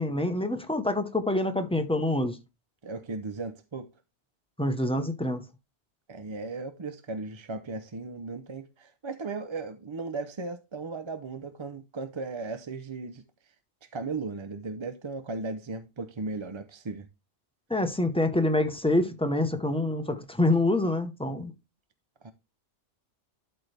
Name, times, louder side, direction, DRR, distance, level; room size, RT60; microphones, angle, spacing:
voice 1, 0.0-2.4 4.6-5.4 17.7-21.5, left 1 dB, 5° left, 0.8 m, -26 dB
voice 2, 2.8-3.9 6.1-13.2 13.8-17.1 22.2-22.3, right 3 dB, 35° right, 0.5 m, -36 dB
12.0 x 4.4 x 3.3 m
omnidirectional pair, 1.2 m